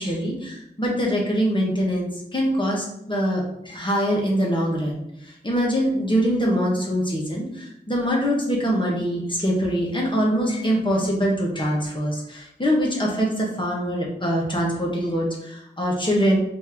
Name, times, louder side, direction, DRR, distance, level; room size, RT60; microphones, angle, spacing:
voice 1, 0.0-5.0 5.4-16.4, equal, 25° left, -3 dB, 1.5 m, -23 dB
4.3 x 3.0 x 3.7 m, 0.79 s
wide cardioid pair, 40°, 18 cm